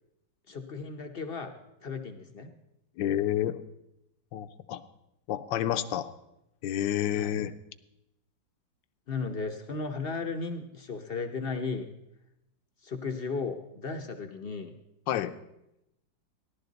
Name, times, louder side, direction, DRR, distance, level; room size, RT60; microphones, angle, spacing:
voice 1, 0.5-1.5 1.8-2.5 7.1-7.4 9.1-11.9 12.8-14.7, left 4 dB, 55° left, 5 dB, 0.6 m, -35 dB
voice 2, 3.0-3.6 4.3-4.8 5.3-6.1 6.6-7.5 15.1-15.3, left 11 dB, 80° left, 11 dB, 1.3 m, -29 dB
16.0 x 11.5 x 4.0 m, 0.86 s
omnidirectional pair, 2.0 m